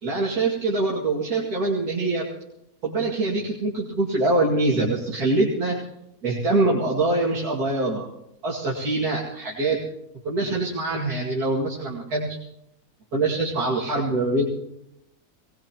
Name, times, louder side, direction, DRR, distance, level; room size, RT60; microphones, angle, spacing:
voice 1, 0.0-2.3 2.8-5.8 6.2-8.1 8.4-9.8 10.2-12.4 13.1-14.4, right 2 dB, 80° right, -6 dB, 2.9 m, -24 dB
21.5 x 19.0 x 3.0 m, 0.85 s
omnidirectional pair, 1.6 m